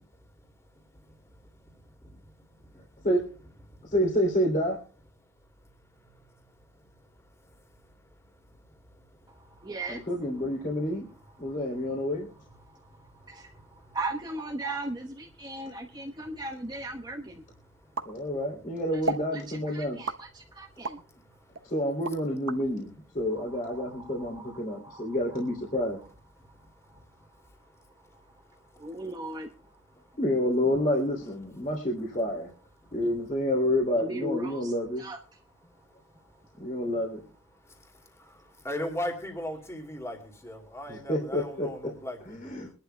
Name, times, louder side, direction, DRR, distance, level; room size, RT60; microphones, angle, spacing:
voice 1, 0.1-1.4 2.0-2.1 2.6-3.1 3.7-4.0 5.2-9.7 10.4-14.0 15.4-16.7 17.3-18.4 20.4-21.7 23.8-25.1 26.3-29.0 29.6-30.2 32.8-33.0 35.4-36.8 37.5-42.7, left 1 dB, 15° left, 2.5 m, -44 dB
voice 2, 3.9-4.8 9.9-11.1 11.4-12.3 18.0-20.0 21.6-26.0 30.1-32.5 32.9-35.1 36.6-37.2 40.9-41.7 42.3-42.7, left 1 dB, 40° left, 3.0 m, -28 dB
voice 3, 9.3-10.1 13.3-13.5 13.9-17.4 19.3-21.0 23.4-25.1 28.8-29.5 34.0-35.2, right 2 dB, 20° right, 1.1 m, -38 dB
sound 1, 17.9-18.6 19.0-19.3 20.0-21.0 21.5-22.6, right 3 dB, 80° right, 1.3 m, -34 dB
23.5 x 11.5 x 2.2 m
head